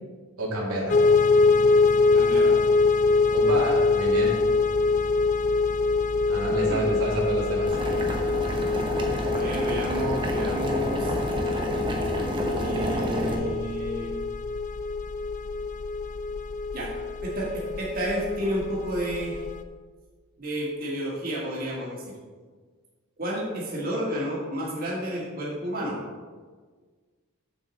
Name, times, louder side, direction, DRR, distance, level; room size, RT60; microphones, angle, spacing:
voice 1, 0.4-1.0 3.3-4.4 6.3-7.8, right 1 dB, 85° right, -4 dB, 2.3 m, -28 dB
sound 1, 0.9-19.6, left 3 dB, 35° left, 0.3 m, -24 dB
voice 2, 2.1-2.6 6.5-6.9 9.2-11.1 12.6-14.2 16.7-16.9 17.2-19.4 20.4-22.2 23.2-26.0, right 1 dB, 40° right, -5 dB, 1.7 m, -31 dB
Boiling, 7.7-13.4, equal, 20° right, 1.0 m, -29 dB
7.3 x 7.3 x 4.2 m, 1.5 s
head